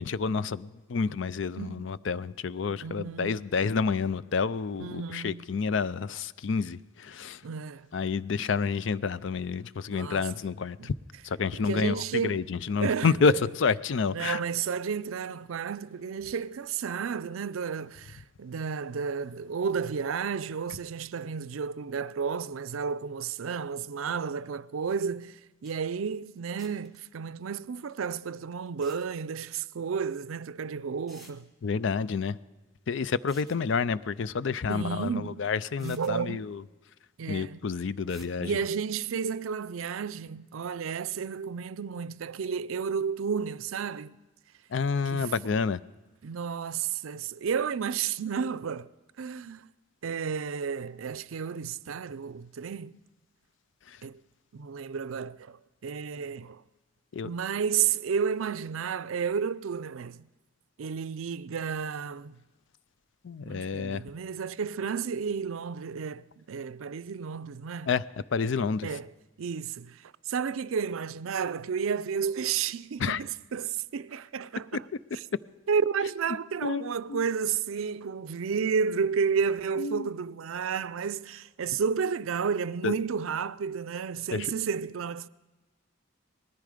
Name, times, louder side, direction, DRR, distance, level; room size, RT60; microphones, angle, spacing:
voice 1, 0.0-7.4 7.9-10.9 11.2-14.4 31.6-32.4 32.9-36.6 37.3-38.6 44.7-45.8 53.9-54.0 57.1-57.3 63.2-64.0 67.9-68.0 68.3-68.9 73.0-73.2 76.6-77.2 79.8-80.1 82.8-82.9 84.3-84.5, left 5 dB, 65° left, 0.4 m, -29 dB
voice 2, 1.6-2.0 2.7-3.4 4.8-5.4 7.4-7.9 9.9-10.3 10.8-10.9 11.5-12.4 12.8-13.4 14.1-31.5 34.7-35.4 35.8-36.5 37.2-37.6 38.4-44.2 45.1-45.3 46.2-48.9 49.2-49.7 50.0-52.9 54.0-54.2 54.5-56.6 57.2-60.3 60.8-62.4 63.4-67.9 68.8-69.1 69.4-74.9 75.7-85.3, right 6 dB, 85° right, 0.5 m, -32 dB
sound 1, 25.4-25.5 25.7-25.8 26.6-27.0 28.7-29.0 30.4-30.5 31.1-31.4 33.1-33.6 35.2-35.3 35.8-36.1 38.1-38.3, right 1 dB, ahead, 1.6 m, -52 dB
19.5 x 14.0 x 5.0 m
head